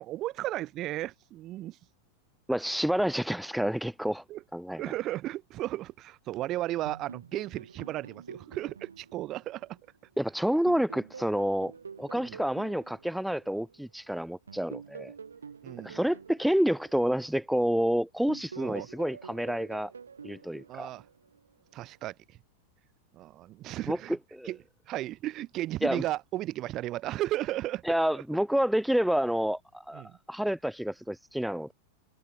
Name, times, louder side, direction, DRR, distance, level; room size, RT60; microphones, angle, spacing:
voice 1, 0.0-1.8 4.3-4.4 4.7-9.8 12.1-12.4 15.6-16.0 18.6-18.9 20.7-21.0 21.7-22.4 23.1-24.2 24.4-24.6 24.9-27.8 29.9-30.2, right 15 dB, 35° right, 0.7 m, -35 dB
voice 2, 2.5-4.2 4.5-4.8 10.2-11.7 12.0-15.1 15.8-19.9 20.2-20.9 23.9-24.0 24.4-24.5 25.8-26.0 27.9-31.7, equal, ahead, 0.4 m, -28 dB
sound 1, 6.9-10.2 10.7-13.9 14.5-17.8 18.3-21.5, right 6 dB, 70° right, 1.9 m, -47 dB
figure-of-eight pair, 90°, 0 cm